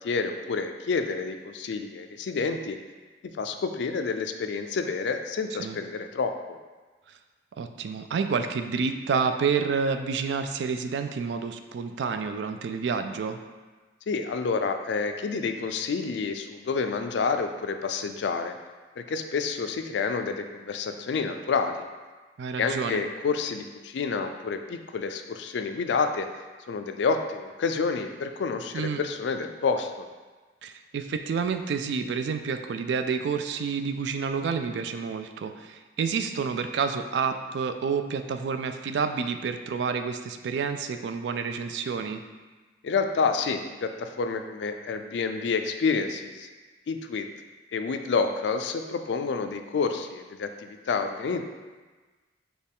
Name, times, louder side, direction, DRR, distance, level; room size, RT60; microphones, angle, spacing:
voice 1, 0.0-2.8 3.4-6.6 14.1-18.5 19.0-21.8 22.6-26.3 26.7-30.1 42.8-46.5 46.9-47.3 47.7-51.4, left 4 dB, 75° left, 7 dB, 0.4 m, -29 dB
voice 2, 7.6-13.4 22.4-23.0 28.7-29.0 30.6-42.2, right 5 dB, 70° right, 7 dB, 0.3 m, -29 dB
6.4 x 2.3 x 3.5 m, 1.3 s
head